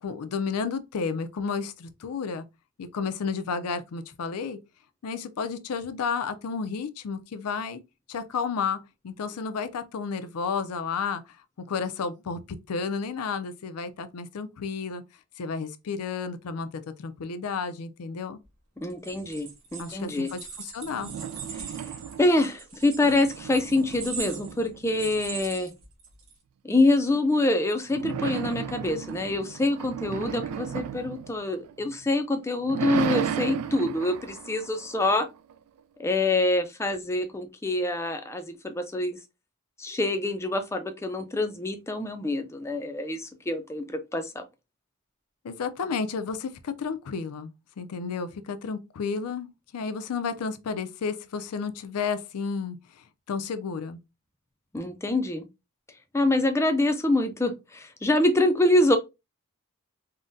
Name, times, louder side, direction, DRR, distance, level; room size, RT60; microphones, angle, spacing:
voice 1, 0.0-2.5 2.8-4.6 5.0-7.8 8.1-11.2 11.7-15.0 15.4-18.4 19.8-21.1 45.4-47.5 47.8-52.8 53.3-54.0, left 5 dB, 85° left, 0.4 m, -32 dB
voice 2, 18.8-20.3 21.5-21.7 22.2-25.7 26.6-35.3 36.0-39.2 39.8-44.4 54.7-55.4 56.1-59.0, left 2 dB, 10° left, 0.3 m, -25 dB
sound 1, 18.9-26.3, right 6 dB, 70° right, 1.1 m, -41 dB
sound 2, 20.8-22.5 22.8-25.6 27.9-32.0 32.4-35.5, right 8 dB, 90° right, 0.3 m, -34 dB
3.7 x 2.1 x 2.5 m
head